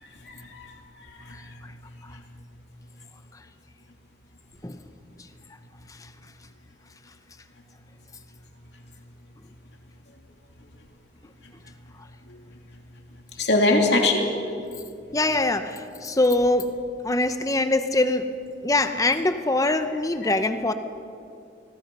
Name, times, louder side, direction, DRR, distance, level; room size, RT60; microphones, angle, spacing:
voice 1, 0.0-0.7 1.0-1.5 2.1-2.2 12.3-12.4 13.4-14.3 20.2-20.3, left 2 dB, 60° left, 2 dB, 3.0 m, -24 dB
voice 2, 15.1-16.7 17.0-18.3 18.6-20.7, left 2 dB, 20° left, 9 dB, 0.8 m, -23 dB
26.0 x 21.0 x 5.5 m, 2.5 s
head